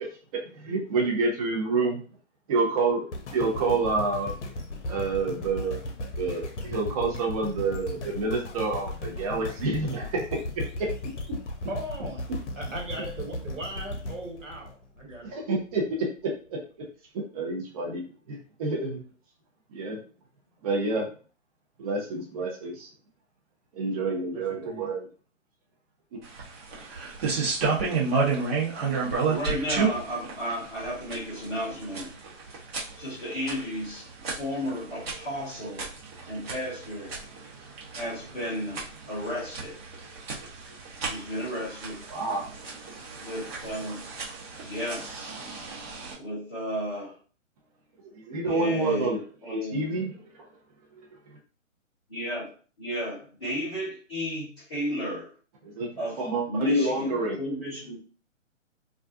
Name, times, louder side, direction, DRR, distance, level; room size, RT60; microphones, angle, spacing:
voice 1, 0.5-2.0 2.5-3.1 3.3-4.3 4.9-5.8 6.2-10.2 10.8-10.9 15.2-16.6 17.1-19.0 19.7-20.0 20.6-21.1 21.8-22.9 23.7-25.1 26.1-26.2 42.1-42.6 48.0-49.2 49.5-50.5 55.6-55.9 56.2-57.4, right 3 dB, 30° right, -1 dB, 0.6 m, -28 dB
sound 1, 3.1-15.3 15.9-16.0, left 1 dB, 65° left, 0.7 m, -36 dB
voice 2, 11.7-12.3 12.6-15.3 24.3-24.9, right 1 dB, 80° right, 0 dB, 1.2 m, -38 dB
sound 2, 26.2-46.1, right 4 dB, 50° right, 1.0 m, -32 dB
voice 3, 29.2-32.1 33.0-35.9 36.3-37.1 37.9-39.8 41.1-42.0 43.2-44.0 44.6-45.1 46.1-47.1 48.4-49.8 52.1-52.5 52.8-55.3 56.0-56.2 56.5-58.0, equal, 5° left, -17 dB, 0.3 m, -33 dB
2.4 x 2.2 x 2.5 m, 0.39 s
figure-of-eight pair, 135°, 38 cm